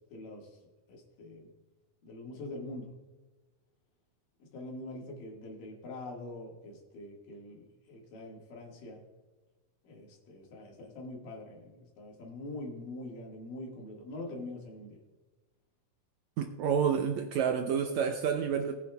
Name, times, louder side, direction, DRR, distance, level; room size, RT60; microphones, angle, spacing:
voice 1, 0.1-0.6 0.9-1.5 2.0-2.9 4.4-9.0 9.8-15.0, left 2 dB, 75° left, 3.4 m, -44 dB
voice 2, 16.4-18.7, right 7 dB, 80° right, 1.6 m, -29 dB
19.0 x 8.5 x 2.3 m
omnidirectional pair, 4.0 m